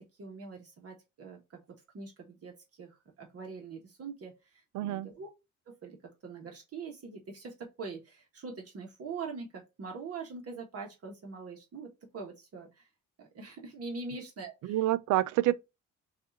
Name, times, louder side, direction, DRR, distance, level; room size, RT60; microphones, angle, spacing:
voice 1, 0.0-5.3 5.7-6.0 6.2-12.9 13.2-14.9, right 4 dB, 50° right, 1.3 m, -43 dB
voice 2, 4.7-5.1 14.7-15.5, right 15 dB, 75° right, 0.5 m, -27 dB
6.3 x 2.5 x 2.6 m
cardioid pair, 90°, 30 cm